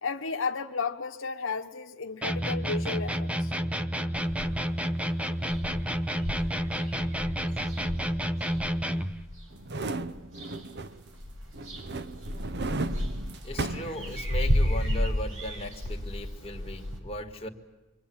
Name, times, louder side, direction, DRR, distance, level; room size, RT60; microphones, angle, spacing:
voice 1, 0.0-3.5, left 4 dB, 75° left, 1.0 m, -33 dB
sound 1, 2.2-9.2, equal, 5° right, 0.9 m, -30 dB
sound 2, 4.1-4.7 5.1-5.2 5.4-9.5 10.0-10.8 11.1-17.0, equal, 75° right, 5.8 m, -32 dB
sound 3, 9.5-11.2 11.5-14.6 15.0-15.1, right 2 dB, 60° right, 0.9 m, -35 dB
voice 2, 13.4-17.5, left 1 dB, 30° left, 2.1 m, -37 dB
27.0 x 23.5 x 8.8 m
head